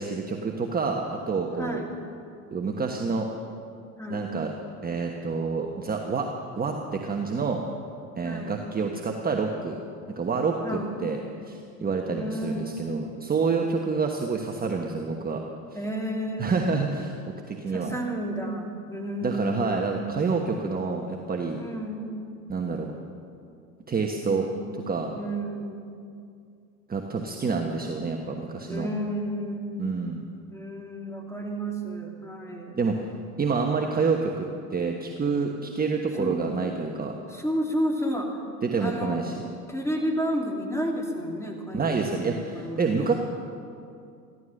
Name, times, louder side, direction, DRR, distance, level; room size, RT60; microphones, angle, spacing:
voice 1, 0.0-1.8 2.5-3.3 4.1-4.5 4.8-6.3 6.6-7.6 8.2-9.8 10.2-11.2 11.5-15.4 16.4-17.9 19.2-21.6 22.5-23.0 23.9-24.5 24.9-25.1 26.9-28.9 29.8-30.2 32.7-33.0 33.4-37.1 38.6-39.3 41.7-43.1, right 4 dB, 20° right, 2 dB, 1.2 m, -28 dB
voice 2, 4.0-4.3 8.2-8.5 10.6-11.0 12.1-13.0 15.7-16.8 17.7-20.1 21.6-22.1 24.3-24.7 25.2-25.8 28.7-29.9 30.5-32.8 35.6-35.7 36.2-36.4 37.3-38.4 38.8-39.2 39.7-43.1, equal, 5° left, 1 dB, 2.6 m, -32 dB
15.0 x 12.5 x 6.5 m, 2.5 s
hypercardioid pair, 85°, 46 cm